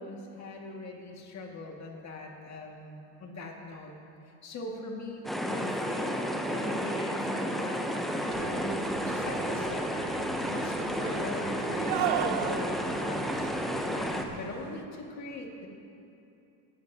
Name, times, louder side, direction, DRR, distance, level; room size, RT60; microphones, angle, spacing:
voice 1, 0.0-3.9 4.2-6.1 6.5-7.9 8.4-9.9 10.5-13.5 13.9-15.7, left 2 dB, 35° left, 0 dB, 1.8 m, -40 dB
sound 1, 5.2-14.2, equal, ahead, 0.4 m, -32 dB
sound 2, 8.3-14.8, right 10 dB, 65° right, 0.7 m, -37 dB
18.5 x 12.5 x 2.7 m, 2.7 s
cardioid pair, 140°, 45 cm